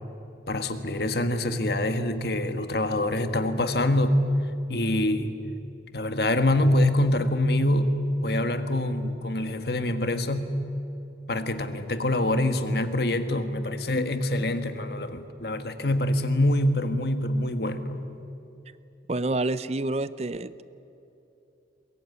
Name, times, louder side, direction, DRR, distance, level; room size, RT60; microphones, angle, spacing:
voice 1, 0.5-4.2 4.7-5.4 5.9-10.6 11.3-18.1, left 1 dB, 60° left, 9 dB, 1.6 m, -25 dB
voice 2, 19.1-20.6, right 2 dB, 35° right, 15 dB, 0.6 m, -28 dB
22.5 x 22.0 x 9.7 m, 2.8 s
head